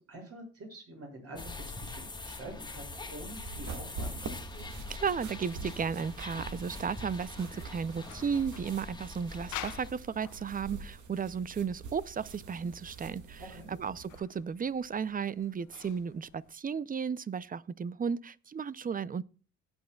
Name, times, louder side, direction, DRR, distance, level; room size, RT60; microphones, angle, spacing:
voice 1, 0.0-4.2 13.4-13.7, right 1 dB, 50° right, 6.7 m, -46 dB
sound 1, 1.4-9.9, left 3 dB, 15° left, 1.5 m, -44 dB
sound 2, 3.3-14.2, right 4 dB, 75° right, 1.9 m, -45 dB
voice 2, 4.9-13.4 13.7-19.2, right 6 dB, 30° right, 0.6 m, -34 dB
sound 3, 7.6-16.5, left 14 dB, 85° left, 0.9 m, -50 dB
17.5 x 8.8 x 2.3 m
cardioid pair, 90°, 30 cm